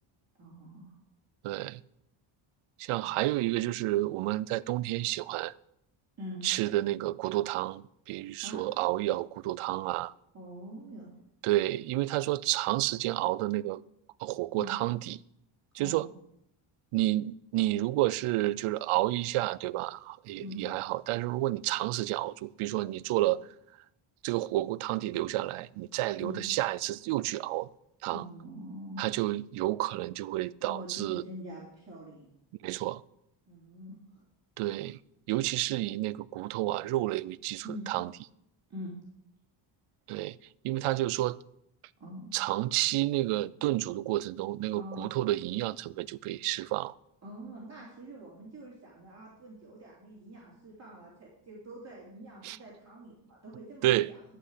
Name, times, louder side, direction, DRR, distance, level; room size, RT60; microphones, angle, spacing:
voice 1, 0.4-0.9 3.0-3.1 6.2-6.4 8.4-8.6 10.3-11.1 14.5-14.7 15.8-16.1 20.4-20.6 26.1-26.5 28.1-29.0 30.6-32.3 33.5-34.2 37.6-37.9 38.7-38.9 42.0-42.3 44.7-45.3 47.2-54.2, equal, 30° right, 3.3 m, -44 dB
voice 2, 1.4-1.8 2.8-5.5 6.4-10.1 11.4-13.8 14.2-15.2 15.7-16.1 16.9-23.5 24.2-27.7 28.0-28.2 29.0-31.2 32.6-33.0 34.6-35.0 35.3-38.1 40.1-40.4 40.6-41.4 42.3-46.9 52.4-52.6 53.8-54.1, right 16 dB, 85° right, 0.6 m, -30 dB
12.0 x 5.8 x 8.2 m
cardioid pair, 120°, 49 cm